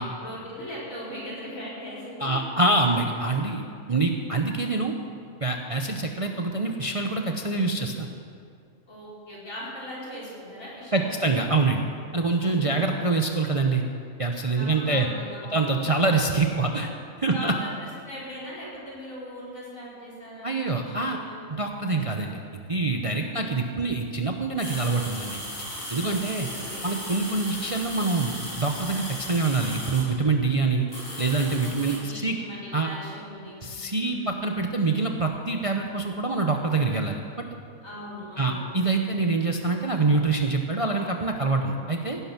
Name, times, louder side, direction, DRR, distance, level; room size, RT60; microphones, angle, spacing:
voice 1, 0.0-2.4 8.9-11.3 12.5-12.9 14.6-16.4 17.3-21.4 23.2-23.6 26.0-26.9 31.8-34.3 37.8-39.2, left 1 dB, 70° left, -7 dB, 5.1 m, -40 dB
voice 2, 2.2-3.6 3.9-4.9 5.4-8.1 10.9-11.8 12.1-13.8 14.2-15.1 15.5-16.9 17.2-17.5 20.4-21.2 21.5-22.4 22.7-25.4 25.9-26.5 26.8-30.9 31.2-32.4 32.7-32.9 33.6-37.2 38.4-42.2, right 3 dB, 30° right, 3 dB, 0.7 m, -25 dB
sound 1, 24.6-30.0 30.9-32.0, left 1 dB, 45° left, 5.3 m, -36 dB
16.5 x 11.5 x 5.9 m, 2.4 s
omnidirectional pair, 1.5 m